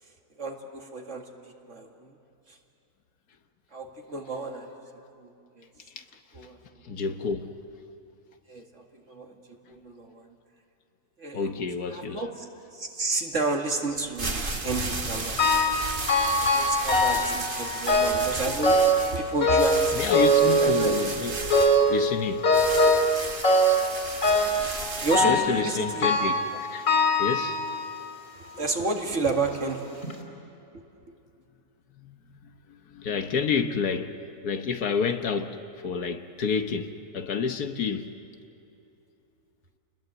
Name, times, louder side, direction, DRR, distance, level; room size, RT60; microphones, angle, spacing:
voice 1, 0.4-1.2 1.7-2.1 3.7-4.8 5.2-5.3 5.6-5.7 6.3-6.6 8.5-10.3 11.2-11.5 11.9-12.4 12.7-15.8 16.3-21.0 25.0-26.1 28.5-29.9 30.7-30.8, right 3 dB, 50° right, 2 dB, 2.3 m, -31 dB
voice 2, 6.8-7.6 11.3-12.3 19.9-21.4 21.9-22.5 24.7-24.8 25.2-26.9 27.2-27.6 32.0-32.2 32.7-34.1 34.4-35.6 35.8-38.1, left 5 dB, 75° left, 7 dB, 1.6 m, -29 dB
sound 1, 14.0-25.2, right 3 dB, 35° right, 1.7 m, -34 dB
sound 2, 15.4-15.8 16.1-17.4 17.9-18.3 18.6-19.1 19.4-21.1 21.5-22.0 22.4-23.1 23.4-23.9 24.2-24.6 25.1-25.6 26.0-26.5 26.9-27.9 28.6-28.7 29.5-29.6 30.0-30.1, equal, 55° left, 3.8 m, -21 dB
29.5 x 20.5 x 7.9 m, 2.7 s
omnidirectional pair, 1.7 m